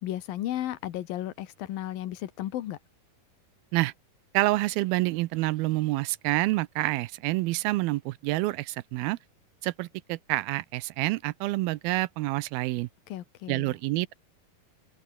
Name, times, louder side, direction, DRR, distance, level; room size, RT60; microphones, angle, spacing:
voice 1, 0.0-2.8 13.1-13.7, left 13 dB, 70° left, 3.0 m, -34 dB
voice 2, 4.3-9.2 9.6-12.9 13.5-14.1, right 19 dB, 80° right, 2.5 m, -28 dB
omnidirectional pair, 4.4 m